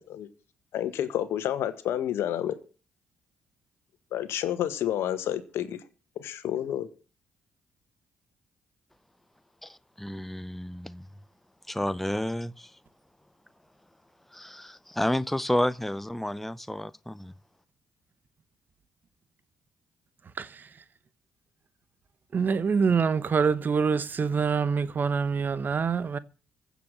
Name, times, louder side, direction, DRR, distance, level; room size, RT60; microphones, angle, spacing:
voice 1, 0.7-2.6 4.1-5.8 6.1-6.9, left 11 dB, 70° left, 1.6 m, -29 dB
voice 2, 9.6-11.0 11.7-12.7 14.3-17.3, left 1 dB, 5° left, 0.7 m, -31 dB
voice 3, 20.4-20.7 22.3-26.2, right 5 dB, 45° right, 1.0 m, -25 dB
15.5 x 7.1 x 7.5 m
hypercardioid pair, 50°, 4 cm